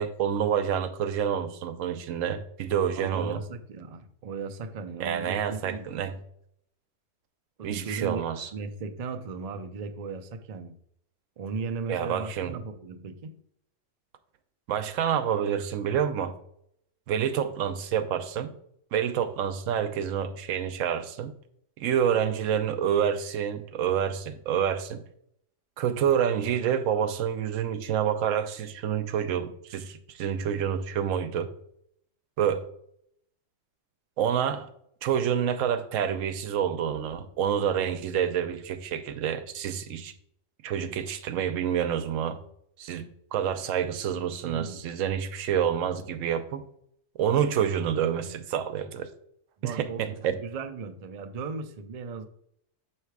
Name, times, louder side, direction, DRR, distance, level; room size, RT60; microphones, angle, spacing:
voice 1, 0.0-3.4 5.0-6.2 7.6-8.5 11.9-12.6 14.7-16.4 17.1-18.5 18.9-21.4 21.8-25.0 25.8-31.5 32.4-32.7 34.2-34.7 35.0-40.1 40.6-42.4 42.8-46.7 47.2-49.1 49.6-50.4, right 8 dB, 85° right, 1.0 m, -28 dB
voice 2, 2.9-5.9 7.6-10.7 11.4-13.3 44.4-44.8 49.6-52.3, right 4 dB, 55° right, 0.4 m, -37 dB
6.6 x 3.2 x 4.6 m
omnidirectional pair, 1.3 m